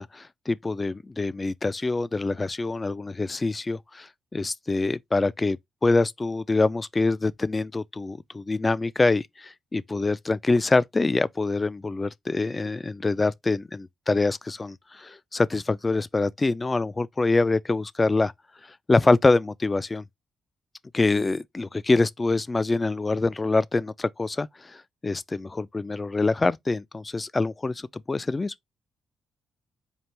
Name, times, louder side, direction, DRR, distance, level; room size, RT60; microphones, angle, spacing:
voice 1, 0.0-4.1 4.3-5.6 5.8-18.3 18.9-20.0 20.9-24.5 25.0-28.5, left 3 dB, 30° left, 0.3 m, -25 dB
4.5 x 2.5 x 3.3 m
supercardioid pair, 50°, 0 cm